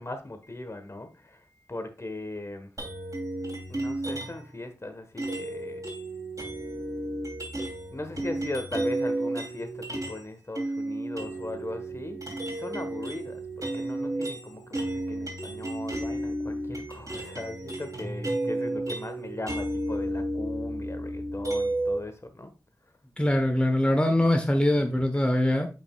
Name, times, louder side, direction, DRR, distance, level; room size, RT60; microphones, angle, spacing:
voice 1, 0.0-2.7 3.7-5.8 7.9-22.5 25.4-25.5, left 2 dB, 45° left, 1.2 m, -39 dB
sound 1, 2.8-4.5 5.2-10.3 10.6-22.0, right 1 dB, 55° right, 2.8 m, -32 dB
voice 2, 23.2-25.7, left 1 dB, 15° left, 1.0 m, -23 dB
8.7 x 5.4 x 2.3 m
wide cardioid pair, 50°, 7 cm